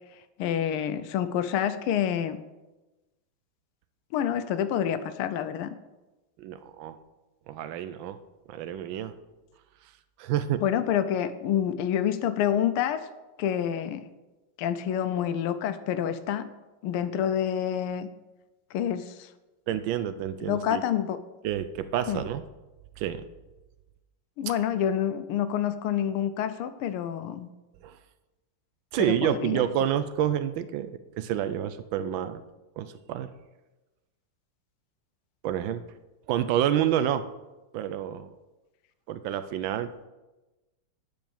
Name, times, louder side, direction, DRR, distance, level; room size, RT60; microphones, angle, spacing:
voice 1, 0.4-2.4 4.1-5.7 10.6-13.1 13.4-14.0 14.6-16.5 16.8-18.1 18.7-19.3 19.7-19.8 20.5-21.2 22.1-22.2 24.4-27.5 29.0-29.7, left 9 dB, 85° left, 11 dB, 1.5 m, -28 dB
voice 2, 6.4-7.0 7.5-8.2 8.5-9.1 10.2-10.6 19.7-20.8 21.4-22.4 23.0-23.3 27.8-28.0 28.9-30.9 31.2-32.4 32.8-33.3 35.4-35.8 36.3-37.2 37.7-38.3 39.1-40.1, right 10 dB, 75° right, 12 dB, 1.2 m, -28 dB
9.2 x 5.1 x 7.1 m, 1.1 s
omnidirectional pair, 2.4 m